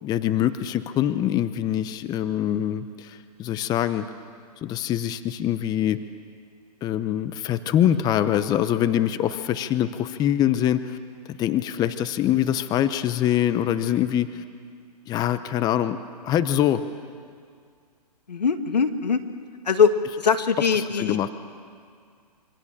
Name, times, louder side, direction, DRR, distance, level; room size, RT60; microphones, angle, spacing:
voice 1, 0.0-4.1 4.6-6.0 6.8-11.0 11.3-14.4 15.1-16.0 16.2-16.8 21.0-21.3, left 11 dB, 20° left, 12 dB, 0.8 m, -24 dB
voice 2, 18.3-19.2 19.6-21.3, left 6 dB, 85° left, 8 dB, 2.0 m, -22 dB
27.0 x 24.5 x 7.4 m, 2.2 s
hypercardioid pair, 130°, 21 cm